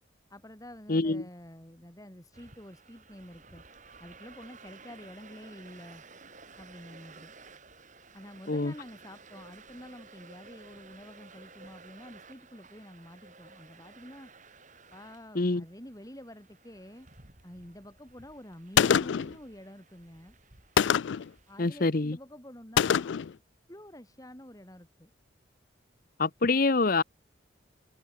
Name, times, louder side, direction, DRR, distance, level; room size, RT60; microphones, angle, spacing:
voice 1, 0.3-3.6 4.0-6.0 6.6-7.4 8.1-14.3 14.9-17.1 17.4-20.3 21.5-23.4 23.7-25.1, equal, 20° left, 5.6 m, -48 dB
voice 2, 0.9-1.2 8.5-8.7 15.4-15.6 21.6-22.2 26.2-27.0, left 3 dB, 50° left, 0.9 m, -25 dB
sound 1, 2.3-21.7, right 4 dB, 40° right, 6.3 m, -54 dB
Gunshot gunfire, 18.8-19.4 20.8-21.3 22.8-23.3, left 8 dB, 75° left, 0.4 m, -24 dB
head